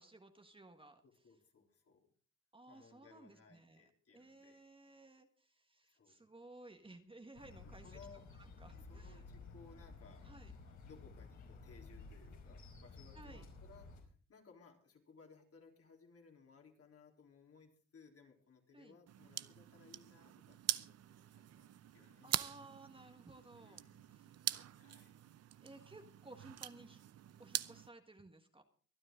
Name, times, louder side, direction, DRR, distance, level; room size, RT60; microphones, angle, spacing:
voice 1, 0.0-1.0 2.5-8.0 8.4-9.2 10.2-10.5 13.1-13.4 18.7-19.0 22.2-23.8 24.1-24.6 25.6-27.0 27.4-28.6, right 2 dB, 15° right, 5 dB, 1.5 m, -58 dB
voice 2, 1.0-2.1 2.7-4.6 5.9-6.2 7.6-8.3 8.7-10.3 10.8-21.0 21.3-22.3 23.6-24.1 24.5-25.2, left 5 dB, 50° left, 2 dB, 3.7 m, -62 dB
sound 1, 7.3-14.0, left 3 dB, 70° left, 5.0 m, -54 dB
sound 2, 19.1-27.9, right 11 dB, 55° right, 0.7 m, -44 dB
24.5 x 9.7 x 3.8 m, 0.42 s
cardioid pair, 90°, 30 cm